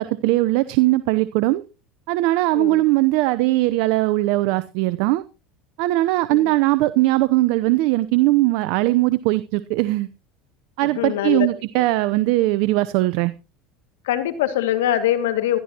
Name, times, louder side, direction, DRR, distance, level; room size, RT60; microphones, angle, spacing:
voice 1, 0.0-1.6 2.1-5.2 5.8-10.1 10.8-13.3, right 18 dB, 70° right, 0.7 m, -20 dB
voice 2, 10.8-11.5 11.8-11.9 14.0-15.6, left 12 dB, 85° left, 2.0 m, -23 dB
16.5 x 13.0 x 2.9 m
supercardioid pair, 95°, 0 cm